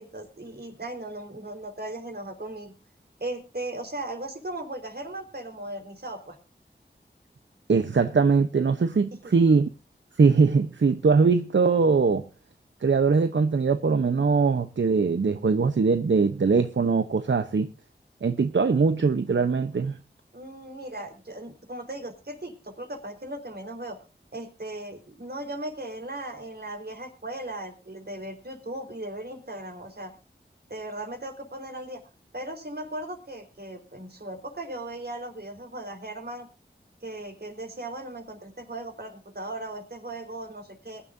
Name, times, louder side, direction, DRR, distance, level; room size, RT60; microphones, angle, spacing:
voice 1, 0.0-2.7 3.2-6.4 9.2-9.3 20.3-24.0 24.3-30.1 30.7-32.0 32.3-36.5 37.0-41.0, right 1 dB, 55° right, 4.3 m, -37 dB
voice 2, 7.7-9.7 10.2-12.3 12.8-17.7 18.2-20.0, right 4 dB, 80° right, 0.8 m, -21 dB
22.0 x 11.0 x 2.7 m
wide cardioid pair, 55°, 19 cm